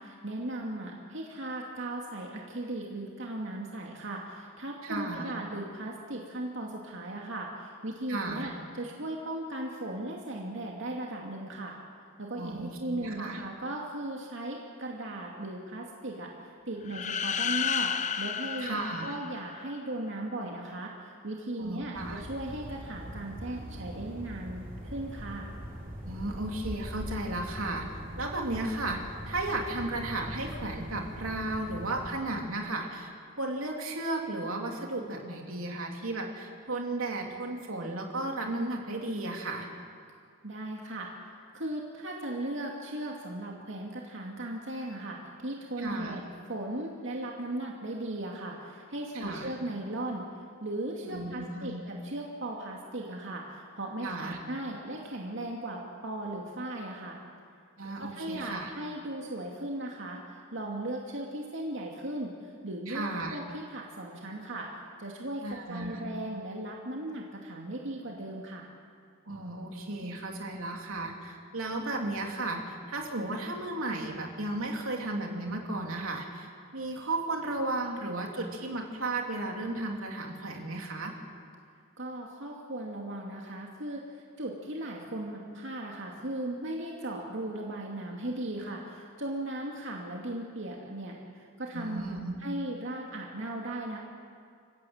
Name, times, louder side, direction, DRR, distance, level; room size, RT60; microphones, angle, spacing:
voice 1, 0.0-11.8 12.2-25.5 40.4-41.1 41.5-46.2 46.5-50.3 50.6-57.2 58.0-68.7 82.0-94.0, right 1 dB, 60° right, -1 dB, 2.5 m, -37 dB
voice 2, 4.8-5.3 8.1-8.5 12.4-13.4 18.6-19.1 21.6-22.2 26.0-27.9 28.2-29.0 29.3-33.1 33.4-39.7 45.8-46.2 49.1-49.5 51.1-51.8 54.0-54.4 57.8-58.7 62.9-63.4 65.4-66.0 69.3-76.5 76.7-81.1 91.7-92.3, right 2 dB, 80° right, 1 dB, 3.1 m, -34 dB
sound 1, 16.9-19.8, left 7 dB, 35° left, 0.8 m, -32 dB
sound 2, 21.9-32.2, equal, 40° right, 5.1 m, -42 dB
27.5 x 15.5 x 8.9 m, 2.2 s
head